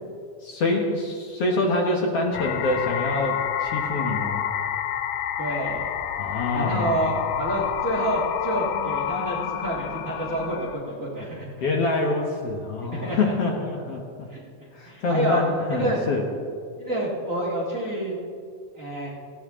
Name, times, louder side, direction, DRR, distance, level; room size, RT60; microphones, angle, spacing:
voice 1, 0.4-4.4 6.2-7.1 11.6-14.3 14.7-16.3, left 2 dB, 60° left, 1 dB, 2.1 m, -26 dB
sound 1, 2.3-10.8, left 10 dB, 80° left, 2.0 m, -29 dB
voice 2, 5.4-5.9 6.5-11.5 12.9-13.3 14.3-14.4 14.8-15.4 15.7-16.0 16.8-18.2 18.7-19.1, right 1 dB, 30° right, -3 dB, 2.1 m, -28 dB
19.0 x 16.0 x 3.7 m, 2.2 s
omnidirectional pair, 3.5 m